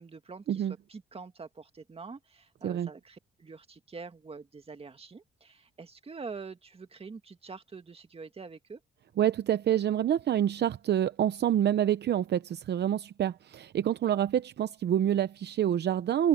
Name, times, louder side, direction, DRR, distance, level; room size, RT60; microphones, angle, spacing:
voice 1, 0.0-8.8, right 4 dB, 30° right, 2.1 m, -45 dB
voice 2, 9.2-16.3, right 10 dB, 60° right, 0.8 m, -27 dB
cardioid pair, 90°, 20 cm